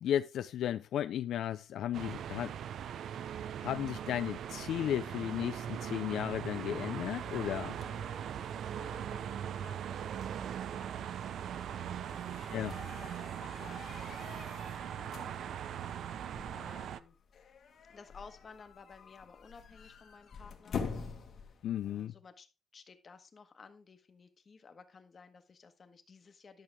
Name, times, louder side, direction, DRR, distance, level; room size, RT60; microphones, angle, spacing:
voice 1, 0.0-2.5 2.9-3.0 3.6-7.8 12.5-12.7 21.6-22.1, left 10 dB, 70° left, 0.4 m, -34 dB
sound 1, 1.9-17.0, right 9 dB, 65° right, 0.5 m, -40 dB
sound 2, 7.0-22.1, left 5 dB, 50° left, 1.4 m, -48 dB
voice 2, 7.8-11.4 11.7-15.3 15.8-17.2 17.9-20.8 21.3-21.5 21.8-22.5 22.7-26.6, left 5 dB, 30° left, 1.3 m, -56 dB
11.5 x 6.6 x 3.5 m
cardioid pair, 160°, 0 cm